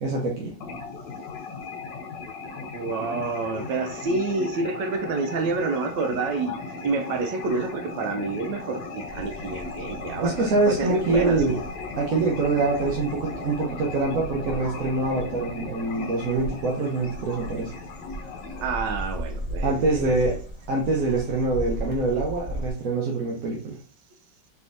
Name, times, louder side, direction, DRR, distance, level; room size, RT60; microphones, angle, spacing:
voice 1, 0.0-0.5 10.2-11.6 12.0-17.7 19.6-20.3 20.7-23.8, right 3 dB, 55° right, 1.1 m, -25 dB
sound 1, 0.6-18.7, left 3 dB, 70° left, 1.5 m, -37 dB
voice 2, 2.7-6.6 6.8-11.6 18.6-20.4, right 3 dB, 75° right, 1.3 m, -28 dB
sound 2, 9.0-22.7, right 1 dB, 40° left, 0.4 m, -37 dB
4.3 x 3.5 x 2.5 m
omnidirectional pair, 2.0 m